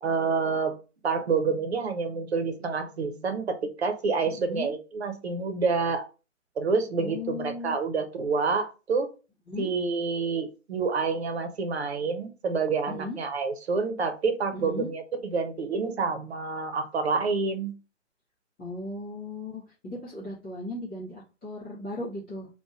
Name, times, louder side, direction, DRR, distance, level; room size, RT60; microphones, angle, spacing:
voice 1, 0.0-0.8 1.0-6.1 6.6-9.1 9.6-17.7, right 4 dB, 55° right, 7 dB, 1.0 m, -28 dB
voice 2, 4.4-4.7 7.0-7.7 9.5-9.7 12.9-13.2 14.5-14.9 18.6-22.5, left 2 dB, 10° left, -9 dB, 0.5 m, -37 dB
2.9 x 2.5 x 3.6 m, 0.32 s
figure-of-eight pair, 140°, 37 cm